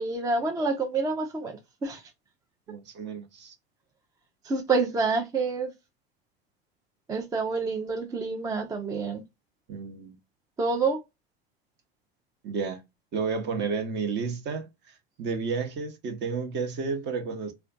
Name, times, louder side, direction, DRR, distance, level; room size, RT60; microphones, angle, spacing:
voice 1, 0.0-2.0 4.4-5.7 7.1-9.2 10.6-11.0, right 4 dB, 10° right, 0.3 m, -28 dB
voice 2, 2.7-3.5 9.7-10.2 12.4-12.8 13.1-17.5, right 5 dB, 35° right, 0.7 m, -31 dB
2.4 x 2.2 x 2.4 m
hypercardioid pair, 110°, 31 cm